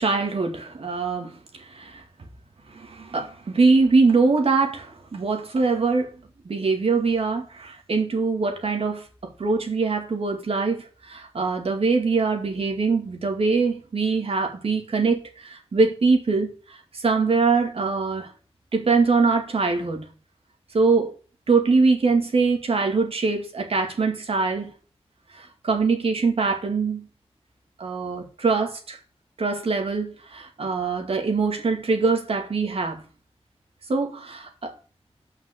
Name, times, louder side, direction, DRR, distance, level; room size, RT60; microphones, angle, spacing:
voice 1, 0.0-2.0 2.7-18.3 18.7-20.1 20.7-21.1 21.5-24.7 25.3-27.1 27.8-29.0 29.4-33.0 33.9-34.7, right 4 dB, 65° right, 2.3 m, -23 dB
7.9 x 5.8 x 7.7 m
wide cardioid pair, 120°, 11 cm